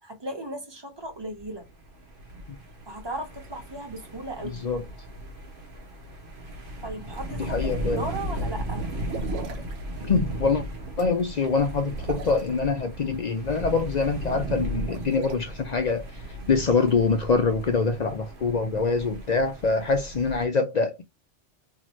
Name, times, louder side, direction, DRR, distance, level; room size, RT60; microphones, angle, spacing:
voice 1, 0.0-1.7 2.9-4.6 6.8-8.9, right 1 dB, 25° right, 0.9 m, -36 dB
sound 1, 1.3-20.5, right 1 dB, 50° right, 1.1 m, -36 dB
voice 2, 4.4-4.8 7.4-8.1 10.1-10.6 11.0-21.0, left 4 dB, 50° left, 0.5 m, -25 dB
sound 2, 9.1-9.8 12.0-12.6 14.7-15.4, right 5 dB, 80° right, 1.1 m, -37 dB
2.8 x 2.5 x 3.0 m
omnidirectional pair, 1.2 m